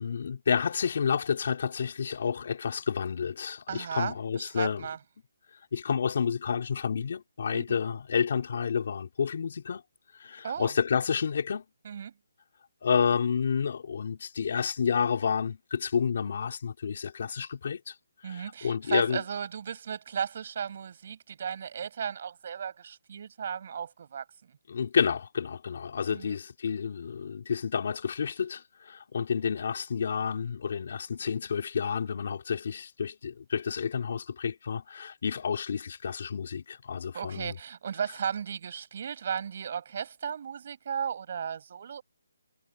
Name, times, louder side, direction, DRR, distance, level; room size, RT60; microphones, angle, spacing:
voice 1, 0.0-4.9 5.7-9.8 10.2-11.6 12.8-17.9 18.2-19.2 24.7-37.5, left 6 dB, 40° left, 4.6 m, -30 dB
voice 2, 3.7-5.0 7.5-7.8 10.4-10.7 11.8-12.1 18.2-24.2 26.1-26.3 37.1-42.0, right 7 dB, 35° right, 7.5 m, -35 dB
hypercardioid pair, 175°, 0 cm